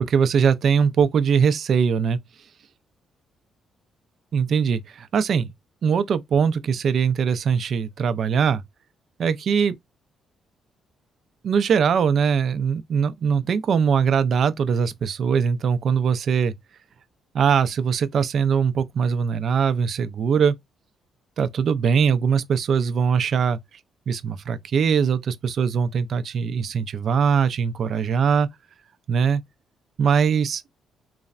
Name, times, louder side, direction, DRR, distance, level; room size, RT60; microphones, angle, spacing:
voice 1, 0.1-2.2 4.3-5.5 5.8-8.6 9.2-9.8 11.4-16.5 17.3-20.5 21.4-23.6 24.1-28.5 29.1-29.4 30.0-30.6, right 6 dB, 60° right, 0.4 m, -21 dB
3.2 x 2.0 x 2.3 m
cardioid pair, 90°, 0 cm